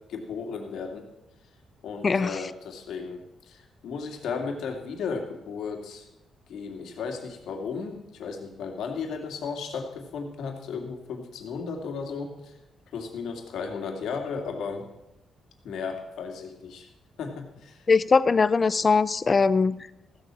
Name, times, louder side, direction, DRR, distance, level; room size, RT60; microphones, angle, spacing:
voice 1, 0.1-1.0 1.8-3.2 3.5-6.1 6.5-12.5 12.9-14.9 15.6-16.9 17.2-17.8, left 5 dB, 80° left, 3 dB, 2.4 m, -35 dB
voice 2, 2.0-2.4 17.9-19.9, left 4 dB, 25° left, 16 dB, 0.4 m, -21 dB
15.5 x 8.0 x 7.5 m, 0.92 s
cardioid pair, 160°, 0 cm